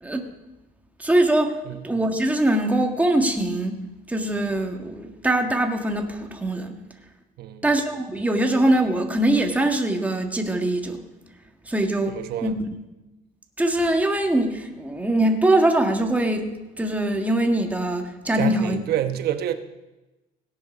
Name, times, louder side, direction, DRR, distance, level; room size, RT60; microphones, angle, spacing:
voice 1, 1.0-3.8 4.1-6.7 7.6-11.0 11.6-12.5 13.6-16.5 16.8-18.8, right 1 dB, 10° right, 3 dB, 1.6 m, -22 dB
voice 2, 12.1-12.5 18.4-19.5, right 11 dB, 70° right, 8 dB, 1.1 m, -27 dB
17.0 x 7.8 x 6.1 m, 1.1 s
cardioid pair, 110°, 17 cm